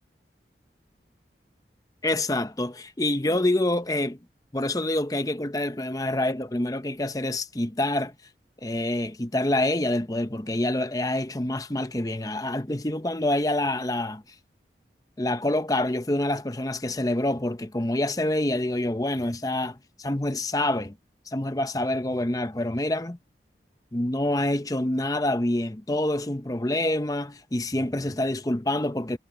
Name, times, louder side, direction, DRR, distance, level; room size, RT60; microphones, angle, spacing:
voice 1, 2.0-4.2 4.5-8.1 8.6-14.2 15.2-20.9 21.3-23.2 23.9-29.2, left 1 dB, 20° left, 0.8 m, -26 dB
head